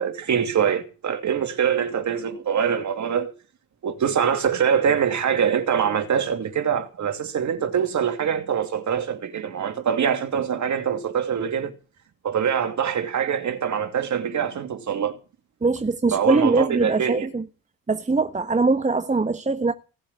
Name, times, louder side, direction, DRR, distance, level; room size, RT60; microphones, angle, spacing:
voice 1, 0.0-3.3 3.8-11.7 12.2-15.2 16.1-17.3, right 8 dB, 50° right, 2.7 m, -24 dB
voice 2, 15.6-17.4 17.9-19.7, right 3 dB, 20° right, 1.3 m, -22 dB
18.0 x 7.4 x 8.3 m
hypercardioid pair, 45°, 37 cm